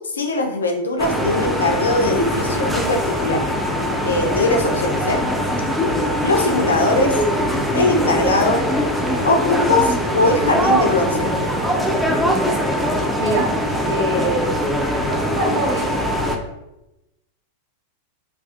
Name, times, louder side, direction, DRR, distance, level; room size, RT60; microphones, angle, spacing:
voice 1, 0.0-3.4 4.0-5.2 6.2-7.2 7.7-8.7 9.2-11.3, left 2 dB, 70° left, 4 dB, 0.4 m, -20 dB
sound 1, 1.0-16.4, equal, ahead, 0.3 m, -21 dB
voice 2, 13.8-14.6 15.1-15.9, right 1 dB, 55° right, -3 dB, 0.9 m, -23 dB
2.5 x 2.3 x 2.4 m, 0.94 s
figure-of-eight pair, 90°, 0 cm